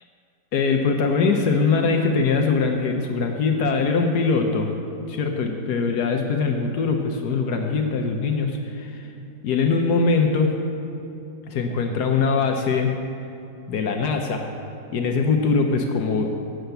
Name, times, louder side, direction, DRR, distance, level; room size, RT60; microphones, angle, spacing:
voice 1, 0.5-4.7 5.1-9.0 9.4-10.6 11.5-12.9 13.7-14.5 14.9-16.3, left 4 dB, 70° left, 3 dB, 1.2 m, -22 dB
7.8 x 7.1 x 7.9 m, 2.8 s
omnidirectional pair, 1.9 m